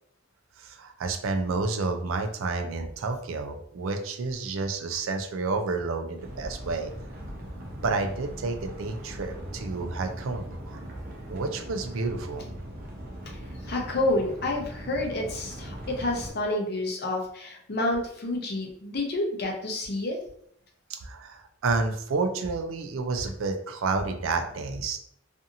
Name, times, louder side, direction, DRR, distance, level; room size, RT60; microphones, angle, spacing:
voice 1, 0.6-6.9 7.8-10.8 11.3-12.5 20.9-25.0, right 3 dB, 85° right, 6 dB, 0.4 m, -30 dB
sound 1, 6.2-16.3, equal, 45° right, 0.6 m, -40 dB
voice 2, 13.2-20.2, left 2 dB, 50° left, 1 dB, 0.6 m, -29 dB
2.7 x 2.5 x 2.5 m, 0.68 s
head